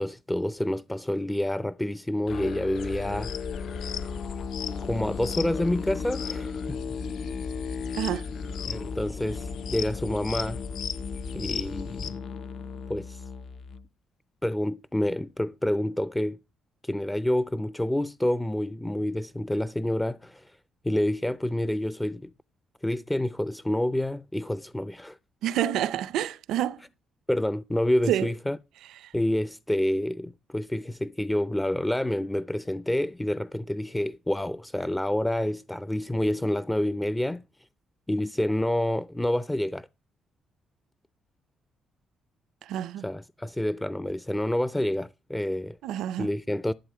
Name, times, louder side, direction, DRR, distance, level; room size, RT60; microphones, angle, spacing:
voice 1, 0.0-3.3 4.9-6.8 8.7-10.6 11.3-12.2 12.9-13.2 14.4-16.4 16.8-20.6 20.8-22.3 22.8-25.2 27.3-28.6 29.1-37.4 38.1-39.9 43.0-45.8 46.2-46.7, left 1 dB, 10° left, 0.4 m, -28 dB
Musical instrument, 2.3-13.9, left 6 dB, 55° left, 0.6 m, -36 dB
sound 1, 2.7-12.1, left 5 dB, 75° left, 1.7 m, -37 dB
voice 2, 7.9-8.2 25.4-26.8 28.1-28.3 29.0-29.1 42.6-43.0 45.8-46.3, right 11 dB, 85° right, 0.6 m, -28 dB
11.5 x 7.2 x 4.8 m
cardioid pair, 90°, 0 cm